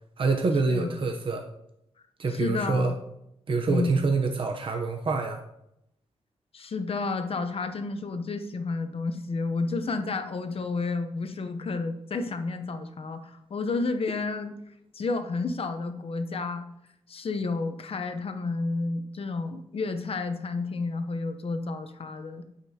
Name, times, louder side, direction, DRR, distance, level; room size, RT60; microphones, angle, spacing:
voice 1, 0.2-1.4 2.2-2.9 3.5-5.4, right 4 dB, 50° right, 3 dB, 0.8 m, -26 dB
voice 2, 2.3-2.9 3.7-4.0 6.5-14.6 14.9-16.7 17.1-22.4, left 3 dB, 55° left, 8 dB, 0.8 m, -31 dB
9.2 x 7.5 x 2.8 m, 0.79 s
wide cardioid pair, 115°, 12 cm